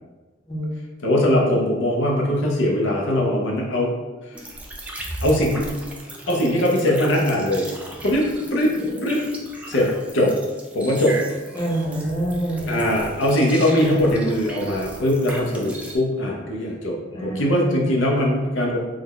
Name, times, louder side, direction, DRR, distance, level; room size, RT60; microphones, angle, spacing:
voice 1, 1.0-3.9 4.2-4.4 5.2-5.7 6.3-7.6 8.0-8.8 9.0-9.2 9.6-10.3 10.7-11.2 12.7-18.8, left 1 dB, 80° left, -2 dB, 0.6 m, -21 dB
sound 1, 4.3-16.0, right 1 dB, 5° right, 0.3 m, -37 dB
voice 2, 11.5-12.8 17.1-17.9, right 1 dB, 20° left, -5 dB, 0.7 m, -27 dB
3.4 x 2.1 x 3.6 m, 1.2 s
head